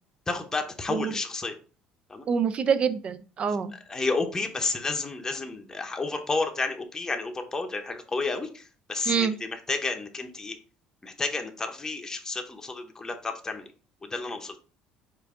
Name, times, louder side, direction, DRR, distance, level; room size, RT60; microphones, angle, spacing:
voice 1, 0.3-1.5 2.1-2.3 3.9-10.6 11.0-13.7 14.0-14.6, left 3 dB, 20° left, 4 dB, 0.7 m, -31 dB
voice 2, 2.3-3.7 9.1-9.4, right 6 dB, 40° right, 12 dB, 0.4 m, -26 dB
4.7 x 2.6 x 3.6 m, 0.38 s
supercardioid pair, 90°, 3 cm